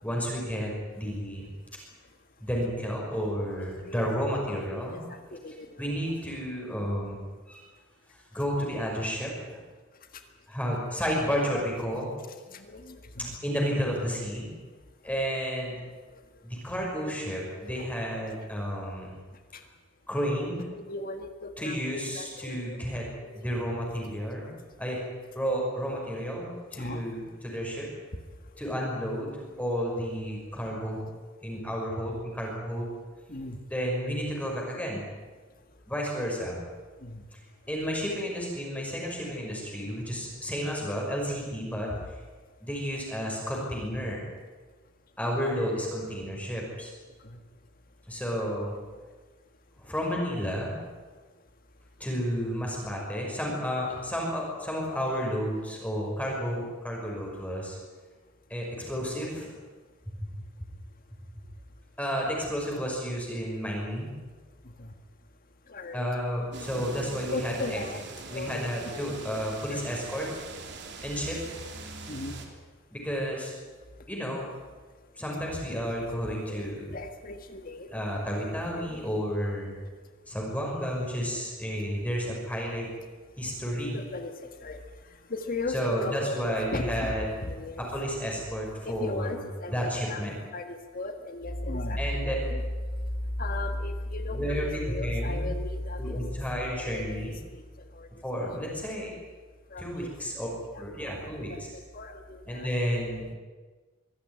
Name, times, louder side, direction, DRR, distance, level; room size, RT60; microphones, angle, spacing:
voice 1, 0.0-1.5 2.4-5.0 5.8-7.2 7.5-7.6 8.1-9.6 10.5-12.1 13.4-14.5 15.0-15.8 16.4-19.2 20.1-20.7 21.6-23.1 23.3-24.5 24.8-25.0 25.4-27.9 28.6-31.1 31.4-32.9 33.7-35.0 35.9-36.6 37.7-42.0 42.6-44.2 45.2-46.9 48.1-48.7 49.8-50.7 52.0-57.8 58.5-59.5 60.2-60.3 62.0-64.1 65.9-67.8 68.3-70.3 71.0-71.4 72.9-73.5 74.1-74.5 75.2-76.9 77.9-79.8 80.3-82.9 83.4-84.0 85.7-87.3 87.8-89.4 89.7-90.4 92.0-92.4 94.3-95.5 96.0-97.4 98.2-99.1 99.8-100.5 100.8-101.5 102.5-103.4, equal, 5° left, -2 dB, 5.8 m, -31 dB
voice 2, 3.6-4.8 5.1-5.9 12.5-13.4 17.7-17.9 19.5-19.6 20.7-21.8 22.1-23.7 26.7-27.0 33.3-33.6 37.0-37.2 47.2-47.4 64.8-64.9 65.7-66.0 67.3-68.0 68.3-69.2 69.7-69.8 72.1-72.4 75.7-75.9 76.2-78.0 78.3-78.5 78.7-79.0 83.9-84.8 85.3-87.9 88.9-90.2 90.5-92.6 93.4-96.2 96.5-97.6 97.9-98.1 98.7-98.8 99.7-100.1 100.6-101.2 101.5-102.7, left 2 dB, 45° left, 6 dB, 1.7 m, -36 dB
sound 1, 66.5-72.5, right 3 dB, 55° right, 3.2 m, -42 dB
23.5 x 15.5 x 9.8 m, 1.4 s
head